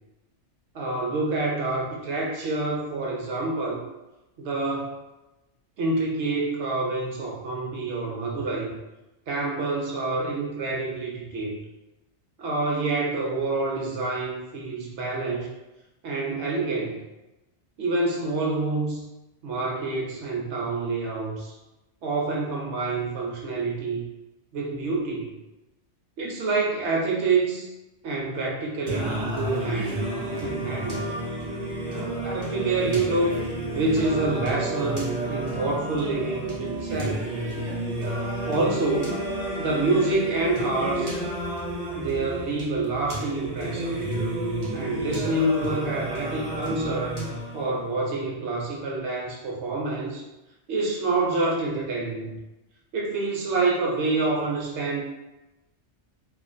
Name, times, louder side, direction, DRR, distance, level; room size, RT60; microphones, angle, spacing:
voice 1, 0.7-3.8 4.4-4.9 5.8-8.7 9.3-11.6 12.4-15.5 16.0-16.9 17.8-19.0 19.4-21.5 22.0-24.0 24.5-25.3 26.2-27.7 28.0-30.0 30.4-31.0 32.2-37.2 38.4-39.2 39.6-41.2 41.9-44.0 44.7-47.2 47.5-50.2 50.7-52.4 52.9-55.0, right 3 dB, 75° right, -3 dB, 0.9 m, -27 dB
Singing, 28.9-47.9, right 1 dB, 50° right, 0.6 m, -31 dB
2.4 x 2.4 x 2.5 m, 1.0 s
omnidirectional pair, 1.2 m